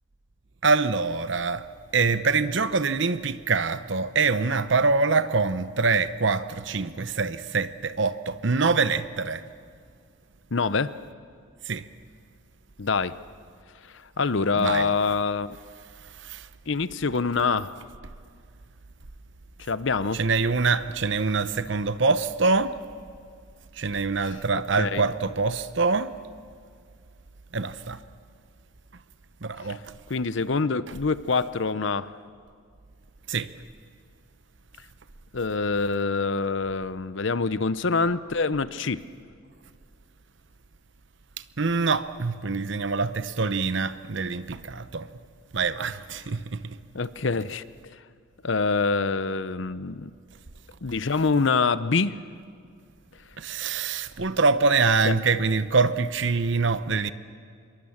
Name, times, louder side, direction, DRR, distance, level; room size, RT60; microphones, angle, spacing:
voice 1, 0.6-1.6 1.9-9.4 11.7-11.8 14.6-14.9 16.2-16.5 20.1-22.8 23.8-26.1 27.5-28.0 29.4-29.8 33.3-33.5 41.6-45.1 45.5-46.8 53.4-57.1, right 4 dB, 60° right, 0.8 m, -24 dB
voice 2, 10.5-10.9 12.8-13.1 14.2-15.6 16.7-17.7 19.6-20.2 24.2-25.1 29.6-29.8 30.1-32.1 35.3-39.0 46.9-48.0 48.4-50.1 50.8-52.2 55.0-55.1, left 4 dB, 65° left, 0.7 m, -25 dB
26.0 x 22.5 x 7.3 m
head